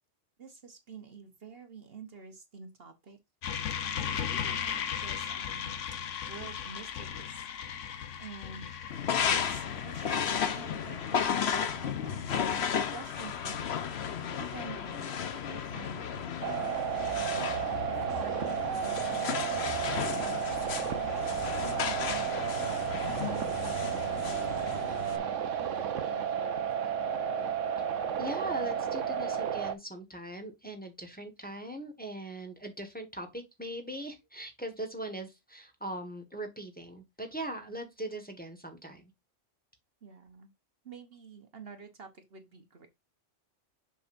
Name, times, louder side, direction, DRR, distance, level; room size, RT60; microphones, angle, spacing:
voice 1, 0.4-3.2 3.8-5.8 6.3-7.5 8.2-8.7 9.3-12.6 12.9-13.6 14.0-16.3 17.1-20.0 20.4-25.2 25.6-26.6 40.0-40.5 40.8-42.9, right 5 dB, 55° right, 1.3 m, -49 dB
sound 1, 3.4-15.7, left 8 dB, 80° left, 1.2 m, -39 dB
sound 2, 8.9-25.2, left 7 dB, 65° left, 1.1 m, -34 dB
sound 3, 16.4-29.7, right 8 dB, 90° right, 1.2 m, -32 dB
voice 2, 28.2-39.1, right 1 dB, 5° left, 1.5 m, -40 dB
6.9 x 6.3 x 2.5 m
omnidirectional pair, 1.2 m